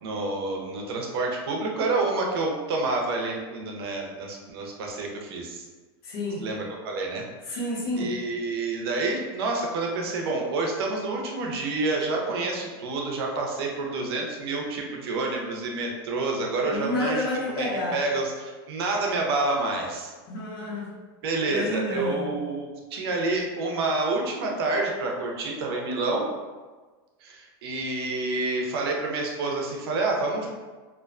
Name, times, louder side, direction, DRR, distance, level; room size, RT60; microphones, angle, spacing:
voice 1, 0.0-5.6 6.4-7.6 8.0-17.3 17.5-20.1 21.2-26.3 27.2-30.5, right 3 dB, 75° right, 0 dB, 0.6 m, -28 dB
voice 2, 6.0-6.5 7.5-8.1 16.4-18.0 20.3-20.9 21.5-22.2, left 1 dB, 70° left, -5 dB, 0.9 m, -30 dB
2.4 x 2.1 x 2.4 m, 1.3 s
supercardioid pair, 130°, 13 cm